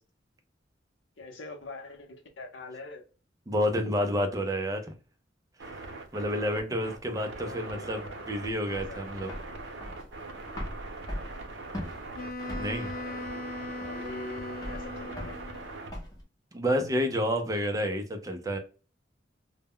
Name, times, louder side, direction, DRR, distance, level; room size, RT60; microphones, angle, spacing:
voice 1, 1.2-3.0 7.3-8.3 8.7-9.0 12.9-13.4 13.7-15.6, left 2 dB, 85° left, 0.7 m, -44 dB
voice 2, 3.5-4.9 5.6-5.8 6.1-8.0 8.3-9.3 12.6-12.9 16.5-18.6, equal, 20° right, 0.4 m, -29 dB
sound 1, 5.6-15.9, right 3 dB, 85° right, 0.7 m, -42 dB
sound 2, 8.7-16.2, equal, 20° left, 0.7 m, -41 dB
Wind instrument woodwind instrument, 12.1-15.7, left 2 dB, 50° left, 0.4 m, -39 dB
2.1 x 2.1 x 3.5 m
head